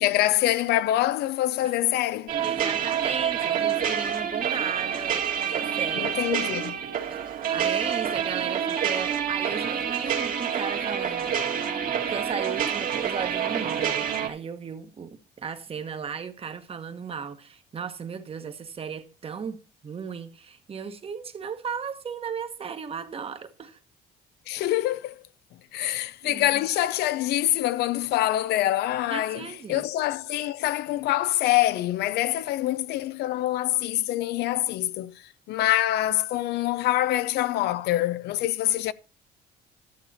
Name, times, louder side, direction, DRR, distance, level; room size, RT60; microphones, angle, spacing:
voice 1, 0.0-2.3 6.0-6.8 24.5-25.2 25.7-35.2 35.5-38.9, left 14 dB, 80° left, 0.5 m, -25 dB
sound 1, 2.3-14.3, right 8 dB, 55° right, 1.9 m, -27 dB
voice 2, 2.4-6.1 7.1-11.3 12.1-19.6 19.8-23.8 25.8-26.6 29.1-29.9, right 6 dB, 35° right, 1.2 m, -36 dB
11.5 x 7.3 x 4.2 m
cardioid pair, 110°, 17 cm